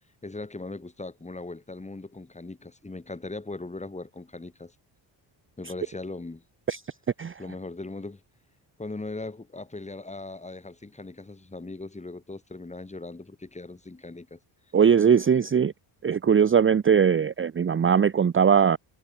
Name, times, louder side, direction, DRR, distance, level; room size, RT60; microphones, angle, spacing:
voice 1, 0.2-4.7 5.6-6.4 7.4-8.2 8.8-14.4, left 2 dB, 15° left, 3.2 m, -39 dB
voice 2, 14.7-15.7 16.0-18.8, right 7 dB, 25° right, 0.8 m, -20 dB
cardioid pair, 120°, 45 cm